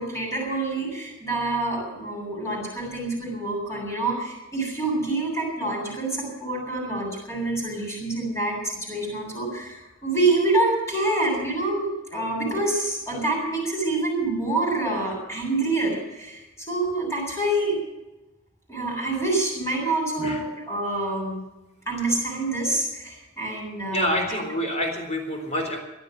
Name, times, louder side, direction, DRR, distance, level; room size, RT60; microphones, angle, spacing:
voice 1, 0.0-17.8 18.7-21.4 21.9-24.4, right 2 dB, 15° left, -2 dB, 8.0 m, -27 dB
voice 2, 23.9-25.8, equal, 35° left, 3 dB, 3.9 m, -27 dB
18.0 x 12.5 x 6.6 m, 1.0 s
head